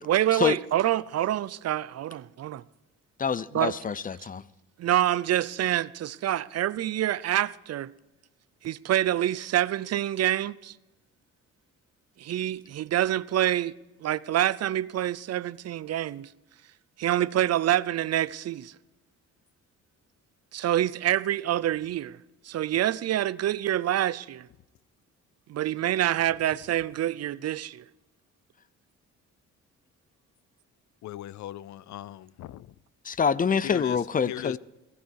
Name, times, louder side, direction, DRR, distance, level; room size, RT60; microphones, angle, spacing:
voice 1, 0.1-2.6 3.5-3.7 4.8-7.9 8.6-10.8 12.2-13.7 14.0-16.3 17.0-18.7 20.5-22.2 22.4-24.5 25.5-27.8, right 12 dB, 55° right, 0.6 m, -26 dB
voice 2, 3.2-4.4 33.0-34.6, left 6 dB, 30° left, 0.6 m, -26 dB
voice 3, 31.0-32.7 33.6-34.6, left 12 dB, 70° left, 0.6 m, -38 dB
17.0 x 14.5 x 4.7 m
cardioid pair, 90°, 30 cm